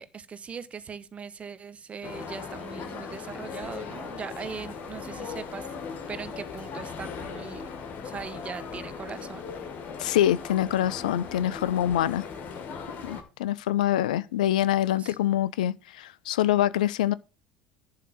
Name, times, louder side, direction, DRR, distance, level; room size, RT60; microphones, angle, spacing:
voice 1, 0.0-5.7 6.1-7.6 8.0-9.4 14.9-15.2, right 6 dB, 30° right, 1.0 m, -40 dB
sound 1, 2.0-13.2, left 5 dB, 45° left, 1.9 m, -38 dB
voice 2, 10.0-12.3 13.0-17.1, left 12 dB, 70° left, 0.4 m, -25 dB
11.0 x 3.8 x 7.5 m
figure-of-eight pair, 65°, 4 cm